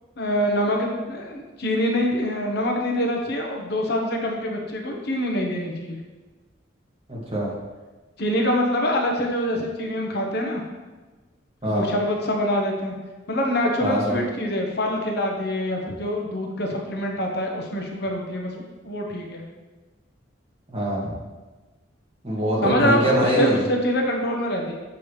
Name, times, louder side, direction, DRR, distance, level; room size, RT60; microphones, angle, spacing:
voice 1, 0.2-6.0 8.2-10.6 11.6-12.9 13.3-19.4 22.6-24.7, equal, 55° left, 0 dB, 1.0 m, -25 dB
voice 2, 7.1-7.5 11.6-11.9 13.8-14.1 20.7-21.1 22.2-23.6, right 1 dB, 30° right, -5 dB, 2.0 m, -23 dB
7.2 x 6.8 x 3.2 m, 1.3 s
head